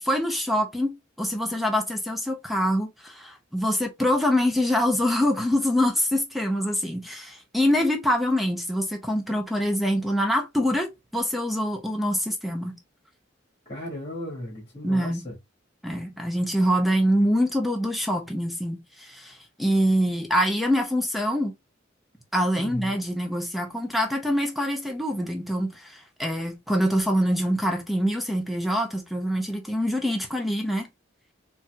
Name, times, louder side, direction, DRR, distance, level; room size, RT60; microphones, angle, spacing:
voice 1, 0.0-12.8 14.8-15.2 15.8-21.5 22.3-30.9, equal, ahead, 0.5 m, -25 dB
voice 2, 13.7-15.3 22.6-22.9, left 1 dB, 30° left, 1.6 m, -35 dB
4.0 x 2.6 x 2.2 m
head